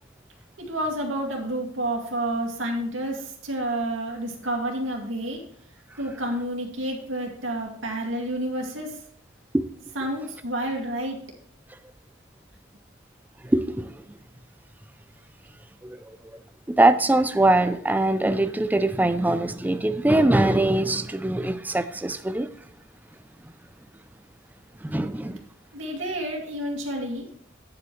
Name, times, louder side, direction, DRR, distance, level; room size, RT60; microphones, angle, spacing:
voice 1, 0.6-5.4 6.0-8.9 10.0-11.2 25.7-27.3, right 1 dB, 80° right, 1 dB, 2.3 m, -29 dB
voice 2, 13.5-13.9 15.8-16.0 16.8-22.5 24.8-25.4, right 2 dB, 10° right, 10 dB, 0.4 m, -22 dB
9.7 x 7.7 x 3.2 m, 0.64 s
head